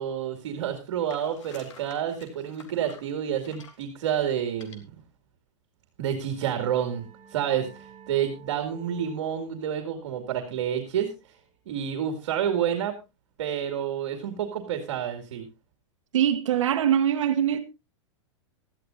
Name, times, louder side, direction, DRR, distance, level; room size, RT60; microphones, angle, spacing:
voice 1, 0.0-4.9 6.0-7.0 7.3-11.1 11.7-12.9 13.4-15.4, right 9 dB, 65° right, 2.4 m, -29 dB
sound 1, 1.1-3.9 4.5-4.8, left 5 dB, 80° left, 3.1 m, -50 dB
sound 2, 6.1-11.5, right 5 dB, 15° left, 7.4 m, -53 dB
voice 2, 16.1-17.6, right 10 dB, 90° right, 1.4 m, -22 dB
17.0 x 13.5 x 2.7 m
supercardioid pair, 170°, 16 cm